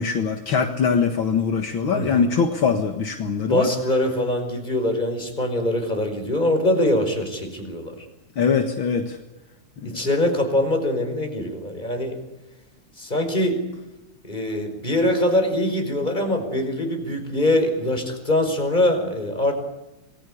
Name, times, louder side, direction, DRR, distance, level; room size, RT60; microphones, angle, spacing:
voice 1, 0.0-3.7 8.4-9.2 9.8-10.0, left 6 dB, 65° left, 5 dB, 2.4 m, -22 dB
voice 2, 1.9-2.3 3.4-8.1 9.9-12.2 13.0-13.6 14.2-19.5, left 1 dB, 20° left, 5 dB, 5.2 m, -23 dB
27.5 x 21.0 x 8.4 m, 0.99 s
omnidirectional pair, 2.4 m